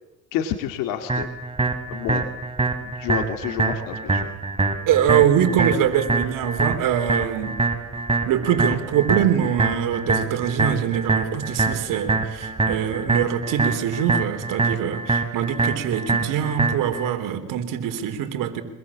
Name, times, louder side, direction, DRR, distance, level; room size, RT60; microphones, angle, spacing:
voice 1, 0.3-1.3 1.9-2.3 2.8-4.3, left 10 dB, 90° left, 6 dB, 2.2 m, -29 dB
sound 1, 1.1-17.1, right 3 dB, 15° right, 4.3 m, -24 dB
voice 2, 4.9-7.6 8.3-18.6, right 9 dB, 75° right, 8 dB, 3.7 m, -23 dB
25.5 x 21.5 x 7.4 m, 1.0 s
cardioid pair, 90°, 33 cm